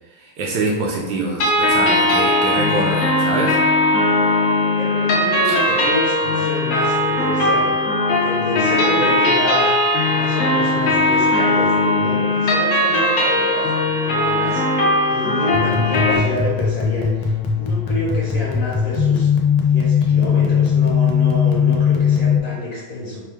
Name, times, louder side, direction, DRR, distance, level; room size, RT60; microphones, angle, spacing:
voice 1, 0.1-3.6 5.4-5.6, right 2 dB, 75° right, -1 dB, 1.1 m, -24 dB
sound 1, 1.4-16.2, left 1 dB, 60° left, 0.8 m, -18 dB
voice 2, 4.8-7.7 8.1-23.2, left 1 dB, 45° left, -6 dB, 1.3 m, -28 dB
sound 2, 15.5-22.4, left 7 dB, 85° left, 1.4 m, -18 dB
4.5 x 2.2 x 3.4 m, 1.3 s
omnidirectional pair, 2.1 m